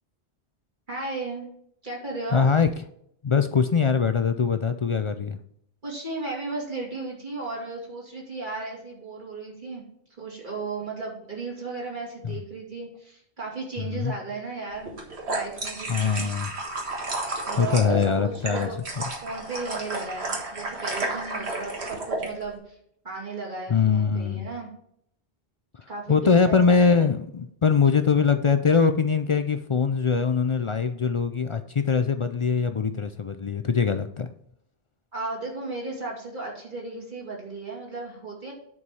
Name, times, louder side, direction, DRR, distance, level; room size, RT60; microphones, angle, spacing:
voice 1, 0.9-1.5 1.8-2.5 5.8-9.8 10.2-14.9 15.3-16.3 17.5-18.8 19.2-22.8 23.0-24.7 25.9-27.0 35.1-38.5, right 3 dB, 45° right, -3 dB, 2.8 m, -35 dB
voice 2, 2.3-2.7 3.2-5.4 12.2-12.3 13.8-14.1 15.9-16.5 17.6-19.0 23.7-24.5 26.1-34.3, left 5 dB, 55° left, 8 dB, 0.3 m, -22 dB
sound 1, 14.8-22.3, right 2 dB, 75° right, 1.9 m, -32 dB
9.9 x 4.7 x 5.5 m, 0.71 s
omnidirectional pair, 1.1 m